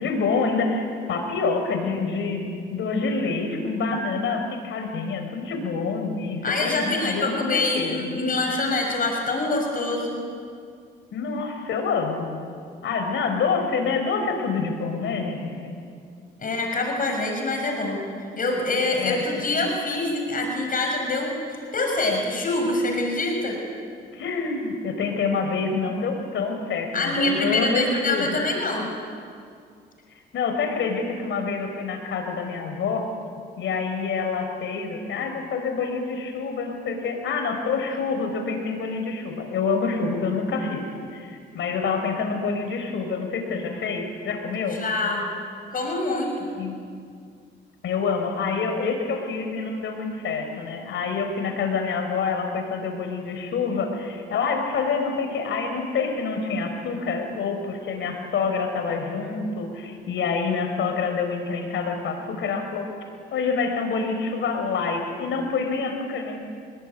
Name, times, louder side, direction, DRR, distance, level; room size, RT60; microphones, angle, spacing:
voice 1, 0.0-8.2 11.1-12.3 12.8-15.7 19.0-19.4 24.1-28.4 30.1-33.1 33.6-44.8 46.6-46.8 47.8-62.9 63.3-66.4, left 4 dB, 70° left, 4 dB, 5.4 m, -27 dB
voice 2, 6.4-10.2 16.4-18.0 18.4-23.5 26.9-28.9 44.7-45.2 45.7-46.3, left 2 dB, 45° left, 2 dB, 6.4 m, -25 dB
26.0 x 21.0 x 9.6 m, 2.2 s
cardioid pair, 90°, 20 cm